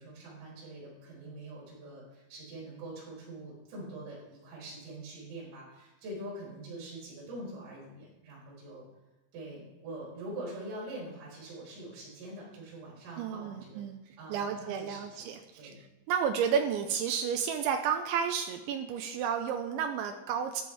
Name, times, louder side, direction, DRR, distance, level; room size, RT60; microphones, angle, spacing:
voice 1, 0.0-8.8 9.3-13.8 14.2-15.3 15.6-15.8, right 1 dB, 70° right, -6 dB, 7.1 m, -44 dB
voice 2, 13.2-20.6, right 7 dB, 90° right, 6 dB, 2.7 m, -32 dB
14.0 x 10.5 x 3.5 m, 1.0 s
omnidirectional pair, 6.0 m